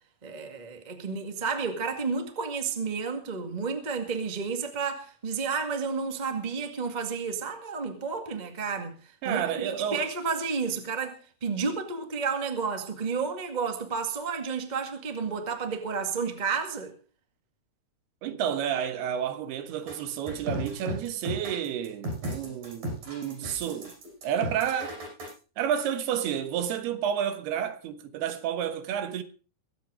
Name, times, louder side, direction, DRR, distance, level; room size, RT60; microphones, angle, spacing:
voice 1, 0.2-8.9 9.2-16.9 18.2-18.4, right 5 dB, 35° right, 0.7 m, -31 dB
voice 2, 9.2-10.1 18.2-23.9 24.2-25.0 25.6-29.2, right 9 dB, 80° right, 3.3 m, -30 dB
sound 1, 19.9-25.3, right 1 dB, 60° right, 7.9 m, -35 dB
22.5 x 8.3 x 5.0 m
omnidirectional pair, 4.6 m